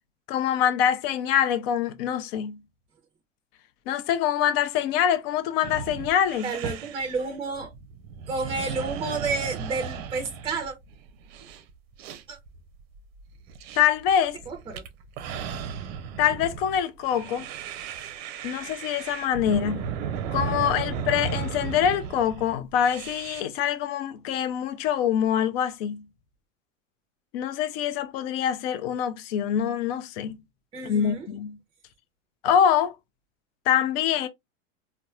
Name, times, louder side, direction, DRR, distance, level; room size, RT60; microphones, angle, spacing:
voice 1, 0.3-2.6 3.9-6.5 13.7-14.4 16.2-17.5 18.4-19.9 20.3-26.0 27.3-30.4 30.8-31.6 32.4-33.0 33.7-34.3, left 9 dB, 50° left, 0.6 m, -25 dB
sound 1, 5.6-23.4, right 7 dB, 50° right, 0.6 m, -35 dB
voice 2, 6.4-7.7 8.3-10.7 12.3-12.4 14.5-14.8 15.5-15.8 30.7-31.3, right 4 dB, 15° right, 0.7 m, -31 dB
4.0 x 2.2 x 2.3 m
hypercardioid pair, 90°, 39 cm